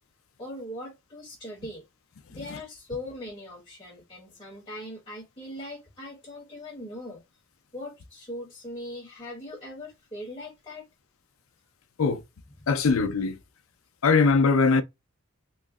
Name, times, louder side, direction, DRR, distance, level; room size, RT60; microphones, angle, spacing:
voice 1, 0.4-1.8 2.3-7.2 7.7-10.8, left 1 dB, 25° left, 0.9 m, -40 dB
voice 2, 12.7-13.4 14.0-14.8, left 4 dB, 85° left, 0.5 m, -21 dB
3.1 x 2.0 x 3.5 m
head